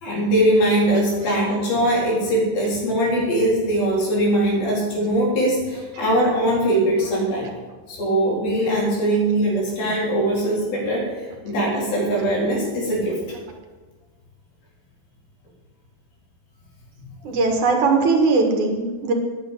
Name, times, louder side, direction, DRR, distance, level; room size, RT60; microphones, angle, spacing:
voice 1, 0.0-7.5 7.9-11.1 11.4-13.2, right 1 dB, 85° left, -4 dB, 5.9 m, -21 dB
voice 2, 17.2-19.1, right 3 dB, 60° right, 2 dB, 2.8 m, -19 dB
9.7 x 9.2 x 9.8 m, 1.3 s
omnidirectional pair, 4.1 m